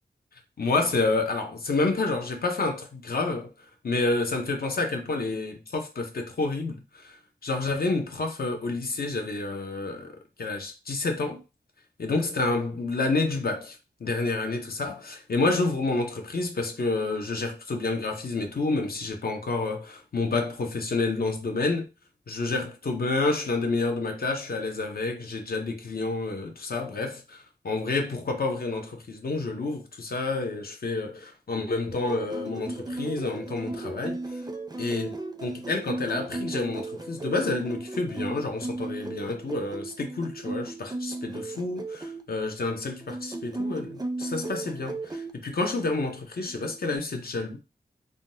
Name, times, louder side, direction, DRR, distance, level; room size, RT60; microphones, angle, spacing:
voice 1, 0.6-3.5 3.8-7.1 7.4-11.4 12.0-21.9 22.3-34.2 34.8-35.1 35.4-47.6, left 3 dB, 65° left, 0.7 m, -29 dB
sound 1, 31.9-42.2 43.0-45.3 46.5-47.0, right 2 dB, 25° right, 0.5 m, -36 dB
3.6 x 2.2 x 2.6 m
wide cardioid pair, 100°, 17 cm